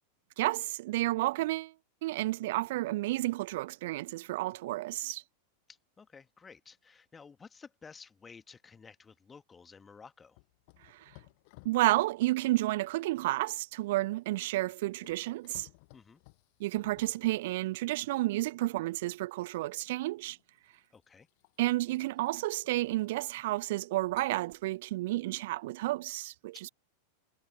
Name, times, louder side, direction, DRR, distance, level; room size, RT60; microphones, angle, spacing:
voice 1, 0.4-1.7 2.0-5.2 10.8-11.1 11.6-15.7 16.6-20.4 21.6-26.7, right 18 dB, 50° right, 0.9 m, -31 dB
voice 2, 5.7-10.4 15.9-16.2 20.9-21.3 26.5-26.6, left 5 dB, 15° left, 1.6 m, -53 dB
sound 1, 10.3-17.9 19.3-19.5 20.2-23.6 24.1-25.0, left 29 dB, 45° left, 6.4 m, -60 dB
figure-of-eight pair, 90°, 0 cm